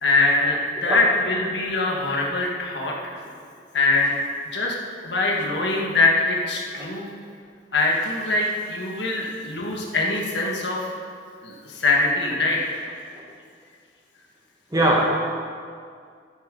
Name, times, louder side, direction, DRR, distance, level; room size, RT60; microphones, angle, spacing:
voice 1, 0.0-3.2 3.7-4.1 4.5-4.8 5.0-7.1 7.7-10.9 11.4-12.8, left 2 dB, 85° left, -2 dB, 1.8 m, -23 dB
voice 2, 14.7-15.3, right 1 dB, 20° right, -2 dB, 1.2 m, -21 dB
11.0 x 9.9 x 5.4 m, 2.2 s
head